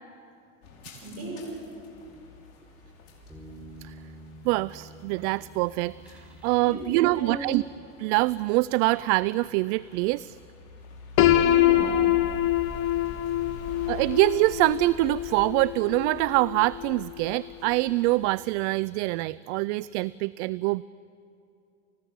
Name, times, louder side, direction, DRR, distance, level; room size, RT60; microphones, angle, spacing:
sound 1, 0.6-18.1, left 2 dB, 65° left, 6.5 m, -48 dB
voice 1, 1.0-1.6 6.6-7.5 11.3-12.1, right 1 dB, 35° right, 2 dB, 7.8 m, -36 dB
sound 2, 3.3-8.2, right 1 dB, 5° right, 6.8 m, -48 dB
voice 2, 4.4-6.2 6.4-7.6 8.0-10.4 13.9-20.8, right 21 dB, 60° right, 20 dB, 0.5 m, -25 dB
Piano, 11.2-17.0, left 13 dB, 45° left, 1.7 m, -25 dB
29.5 x 16.5 x 8.8 m, 2.6 s
hypercardioid pair, 90°, 41 cm